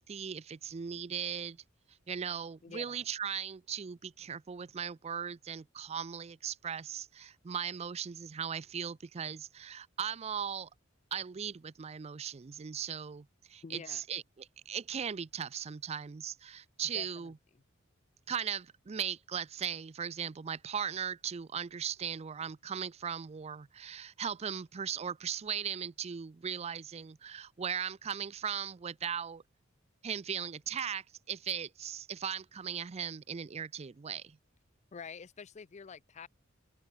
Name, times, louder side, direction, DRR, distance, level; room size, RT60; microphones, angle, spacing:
voice 1, 0.0-1.6 2.1-10.7 11.1-17.4 18.3-29.4 30.0-34.4, right 8 dB, 30° right, 0.4 m, -38 dB
voice 2, 2.6-3.0 13.6-14.0 16.9-17.3 34.9-36.3, left 5 dB, 35° left, 0.4 m, -47 dB
open air
head